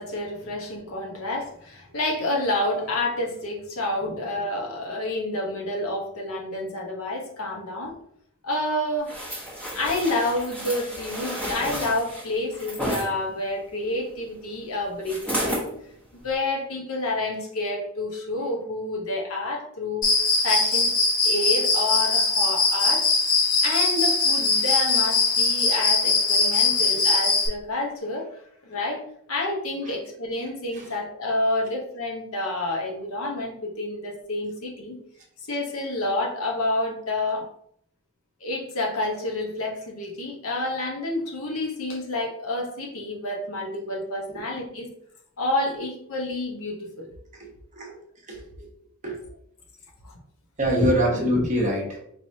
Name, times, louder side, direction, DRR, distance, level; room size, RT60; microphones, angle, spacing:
voice 1, 0.0-7.9 8.4-9.1 9.7-15.7 16.2-20.1 20.4-20.9 21.2-23.1 23.6-28.3 28.6-29.0 29.3-35.0 35.5-37.5 38.4-44.9 45.4-47.1 50.0-50.1 50.8-50.9, left 2 dB, 70° left, 1 dB, 0.9 m, -29 dB
sound 1, 9.1-13.1 15.0-15.7 16.2-16.3, equal, 5° left, 0.9 m, -31 dB
Cricket, 20.0-27.5, left 3 dB, 40° left, 1.2 m, -21 dB
voice 2, 48.3-48.7 49.0-49.2 50.6-52.0, equal, 35° right, -1 dB, 0.9 m, -25 dB
4.6 x 3.1 x 2.7 m, 0.71 s
head